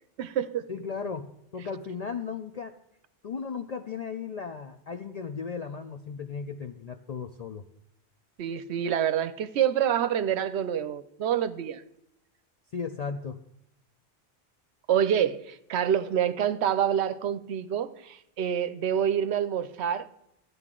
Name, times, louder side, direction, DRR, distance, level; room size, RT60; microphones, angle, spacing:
voice 1, 0.2-0.6 8.4-11.8 14.9-20.1, right 9 dB, 70° right, 0.8 m, -27 dB
voice 2, 0.7-2.8 3.2-7.7 12.7-13.4, left 5 dB, 55° left, 0.4 m, -36 dB
13.0 x 9.3 x 3.7 m
omnidirectional pair, 1.2 m